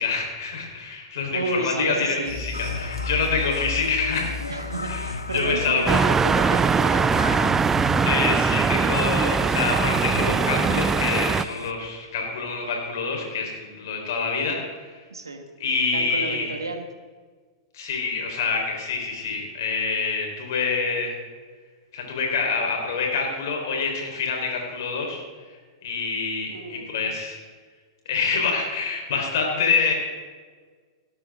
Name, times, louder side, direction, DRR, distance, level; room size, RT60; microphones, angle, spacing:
voice 1, 0.0-4.3 4.8-6.0 8.0-14.6 14.9-15.0 15.6-16.6 17.7-21.2 21.9-25.2 25.8-27.4 28.1-29.9, left 4 dB, 60° left, 1 dB, 4.4 m, -26 dB
voice 2, 1.3-2.4 4.5-7.2 15.1-15.5 15.9-16.9 26.5-27.1, right 2 dB, 85° right, 6 dB, 1.8 m, -31 dB
sound 1, 2.3-10.9 11.2-11.4 11.8-11.9, left 4 dB, 50° right, 3.4 m, -38 dB
sound 2, 2.5-11.7, left 3 dB, 90° left, 0.9 m, -35 dB
sound 3, 5.9-11.4, right 5 dB, 15° right, 0.4 m, -21 dB
17.5 x 12.5 x 3.8 m, 1.5 s
figure-of-eight pair, 100°, 2 cm